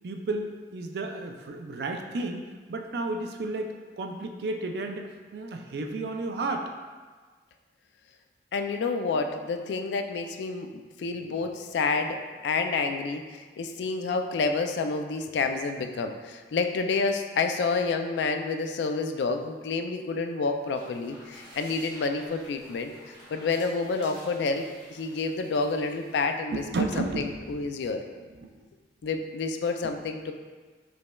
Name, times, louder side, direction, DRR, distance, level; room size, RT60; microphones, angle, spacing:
voice 1, 0.0-6.7 26.5-27.9 28.4-28.6 29.8-30.0, right 2 dB, 65° right, 4 dB, 0.4 m, -33 dB
voice 2, 8.5-26.6 27.0-28.0 29.0-30.3, left 4 dB, 75° left, 6 dB, 0.3 m, -29 dB
sound 1, 20.6-26.3, equal, 25° right, 1.1 m, -51 dB
5.1 x 3.1 x 2.2 m, 1.4 s
head